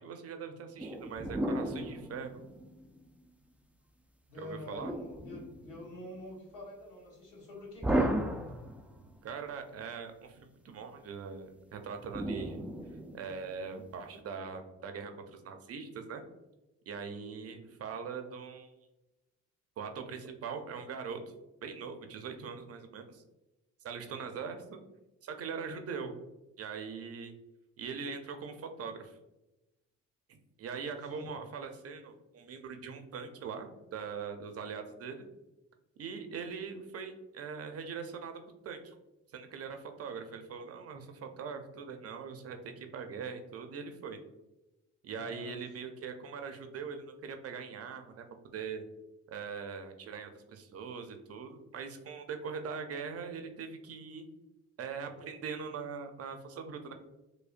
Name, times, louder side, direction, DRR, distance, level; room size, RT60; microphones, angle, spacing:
voice 1, 0.0-2.4 4.3-4.9 9.2-12.6 13.1-16.2 16.9-18.7 19.8-21.2 21.6-23.2 23.8-24.8 25.2-26.1 26.6-27.3 27.8-29.2 30.3-35.2 36.0-38.3 38.6-38.9 39.3-44.2 45.0-48.2 48.5-48.8 49.3-54.3 54.8-56.9, right 6 dB, 50° right, 6 dB, 0.6 m, -41 dB
sound 1, 0.8-3.1 4.8-6.0 7.8-9.2 12.1-13.6, right 1 dB, 5° right, 0.3 m, -35 dB
voice 2, 4.3-8.4 31.0-31.3 45.1-45.6, left 2 dB, 85° left, -3 dB, 1.4 m, -46 dB
4.9 x 2.1 x 2.5 m, 0.98 s
cardioid pair, 90°, 30 cm